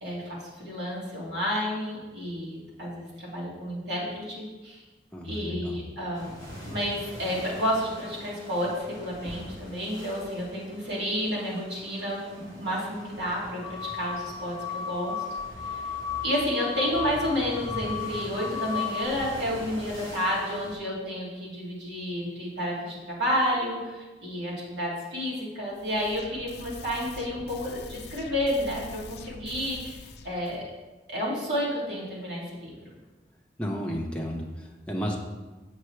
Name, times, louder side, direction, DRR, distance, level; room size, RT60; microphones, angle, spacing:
voice 1, 0.0-4.8 5.2-6.3 6.7-15.1 15.7-15.8 16.2-30.6 31.1-32.7, equal, 70° right, -6 dB, 2.4 m, -31 dB
voice 2, 5.1-5.8 33.6-35.2, equal, 5° left, -2 dB, 0.8 m, -32 dB
sound 1, 6.1-20.8, equal, 30° right, 2.1 m, -44 dB
sound 2, 13.6-19.0, left 7 dB, 50° right, 2.0 m, -34 dB
sound 3, 25.7-30.6, left 3 dB, 65° left, 0.5 m, -44 dB
8.0 x 6.6 x 3.2 m, 1.2 s
head